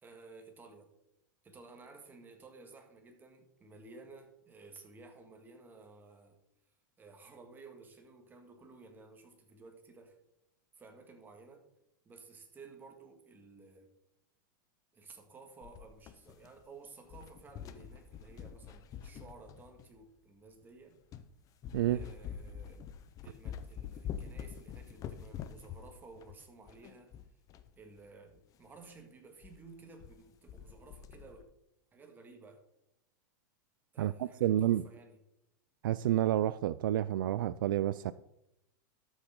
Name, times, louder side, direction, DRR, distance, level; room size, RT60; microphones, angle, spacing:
voice 1, 0.0-0.9 1.4-6.4 7.0-10.2 10.7-11.7 12.0-13.9 14.9-21.0 21.9-22.9 23.2-27.2 27.8-31.5 31.9-32.6 33.9-35.2, right 3 dB, 15° right, 4 dB, 1.9 m, -55 dB
sound 1, 15.6-16.7 17.0-20.0 20.6-20.7 21.1-21.3 21.6-27.7 28.0-28.1 28.3-28.4 28.8-29.0 29.4-29.6 29.8-30.2 30.5-31.4, left 8 dB, 35° left, 0.7 m, -46 dB
voice 2, 34.0-34.8 35.8-38.1, right 12 dB, 85° right, 16 dB, 0.4 m, -29 dB
12.5 x 7.1 x 3.8 m, 0.82 s
supercardioid pair, 130°, 11 cm